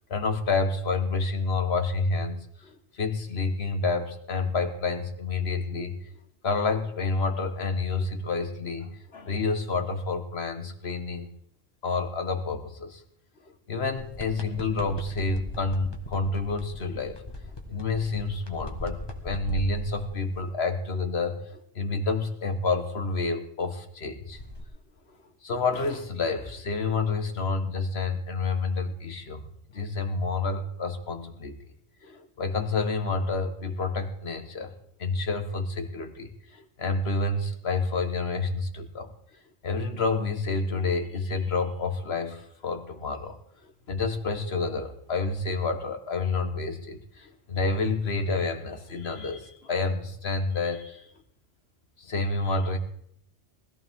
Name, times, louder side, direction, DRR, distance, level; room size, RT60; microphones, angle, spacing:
voice 1, 0.1-6.0 6.4-11.3 11.8-13.0 13.7-17.2 17.7-24.4 25.4-29.4 29.7-31.6 32.0-34.7 35.0-39.1 39.6-43.4 43.6-51.1 52.0-52.8, left 3 dB, 70° left, 7 dB, 1.7 m, -29 dB
sound 1, 13.9-20.5 24.3-24.6, left 2 dB, 25° left, 1.5 m, -39 dB
20.0 x 14.5 x 3.7 m, 0.70 s
omnidirectional pair, 1.1 m